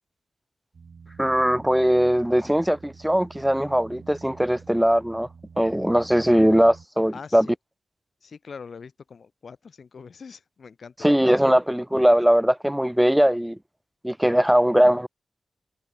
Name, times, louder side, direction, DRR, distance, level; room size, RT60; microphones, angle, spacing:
sound 1, 0.7-6.9, right 5 dB, 60° right, 4.9 m, -47 dB
voice 1, 1.2-5.3 5.6-7.5 11.0-13.6 14.0-15.1, equal, 5° right, 1.2 m, -20 dB
voice 2, 7.1-7.5 8.2-11.2, left 5 dB, 65° left, 2.9 m, -43 dB
wide cardioid pair, 110°, 0 cm